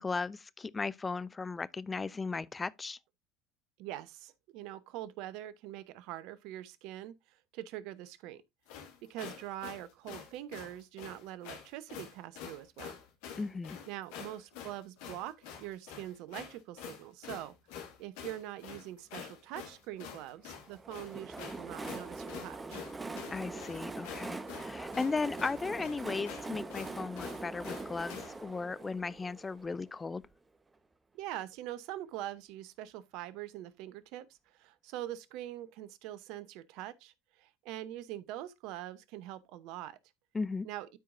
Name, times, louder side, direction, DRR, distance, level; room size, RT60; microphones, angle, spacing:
voice 1, 0.0-3.0 13.4-13.8 23.3-30.2 40.3-40.7, left 4 dB, 20° left, 0.5 m, -36 dB
voice 2, 3.8-8.4 9.1-12.9 13.9-17.6 18.0-22.8 31.1-40.0 40.6-40.9, right 13 dB, 65° right, 0.8 m, -43 dB
sound 1, 8.7-28.4, left 8 dB, 70° left, 1.9 m, -47 dB
Train, 20.7-30.3, right 3 dB, 20° right, 1.1 m, -43 dB
12.5 x 4.7 x 2.6 m
hypercardioid pair, 70°, 0 cm